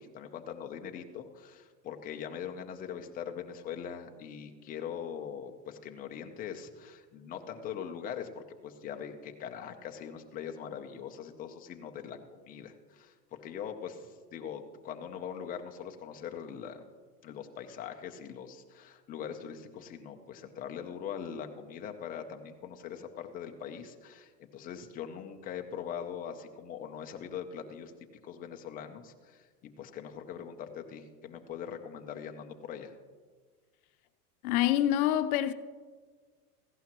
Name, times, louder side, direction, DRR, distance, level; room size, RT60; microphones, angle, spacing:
voice 1, 0.0-12.2 12.4-13.1 13.4-16.8 17.2-27.9 28.2-29.5 29.8-32.9, left 8 dB, 20° left, 0.6 m, -42 dB
voice 2, 34.4-35.5, left 12 dB, 65° left, 0.8 m, -26 dB
15.5 x 11.5 x 3.0 m
supercardioid pair, 140°, 47 cm